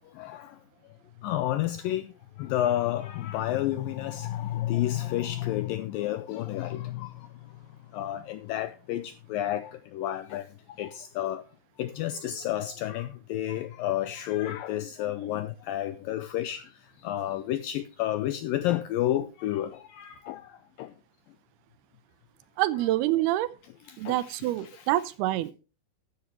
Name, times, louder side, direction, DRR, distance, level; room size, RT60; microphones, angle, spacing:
voice 1, 0.2-0.6 1.2-2.1 2.4-7.3 7.9-10.5 10.8-11.4 11.8-16.7 17.0-20.9 23.6-24.9, left 13 dB, 85° left, 2.0 m, -31 dB
voice 2, 22.6-23.5 24.0-25.5, right 15 dB, 80° right, 2.7 m, -26 dB
12.5 x 10.0 x 3.0 m
omnidirectional pair, 4.7 m